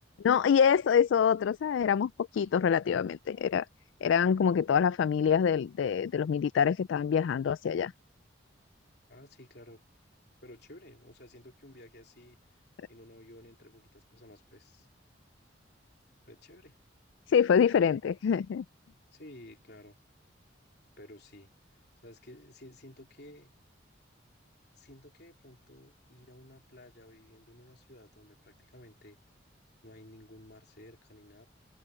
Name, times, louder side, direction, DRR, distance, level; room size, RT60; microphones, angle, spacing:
voice 1, 0.2-3.7 4.0-7.9 17.3-18.6, left 7 dB, 75° left, 0.3 m, -25 dB
voice 2, 9.1-9.8 10.4-12.6 12.9-14.9 16.3-16.8 19.1-20.0 21.0-23.5 24.8-29.2 29.8-31.5, left 1 dB, 55° left, 3.6 m, -53 dB
head